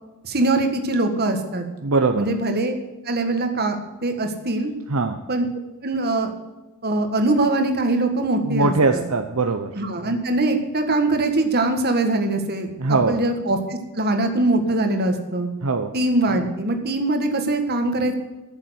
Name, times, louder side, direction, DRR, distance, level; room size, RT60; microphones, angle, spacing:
voice 1, 0.2-1.6 2.2-2.8 3.0-3.8 4.0-4.7 5.3-5.4 5.8-6.3 6.8-9.0 9.7-12.7 13.1-15.5 15.9-18.1, right 2 dB, 45° right, 5 dB, 1.7 m, -22 dB
voice 2, 1.8-2.3 4.9-5.2 8.4-9.7 12.8-13.2 15.6-15.9, right 3 dB, 70° right, 6 dB, 0.8 m, -21 dB
13.5 x 7.3 x 8.1 m, 1.1 s
head